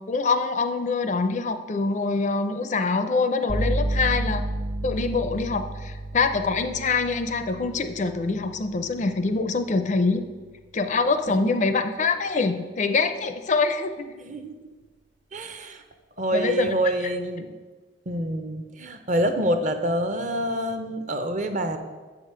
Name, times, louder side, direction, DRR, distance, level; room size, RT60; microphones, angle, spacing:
voice 1, 0.0-4.5 4.8-10.2 10.7-14.1 16.3-16.7, left 4 dB, 40° left, 9 dB, 0.4 m, -24 dB
sound 1, 3.5-11.2, right 1 dB, 65° right, 0.8 m, -32 dB
voice 2, 14.2-14.5 15.3-15.8 16.2-17.5 18.1-21.8, right 1 dB, 40° right, 8 dB, 0.6 m, -27 dB
6.9 x 4.9 x 6.6 m, 1.3 s
head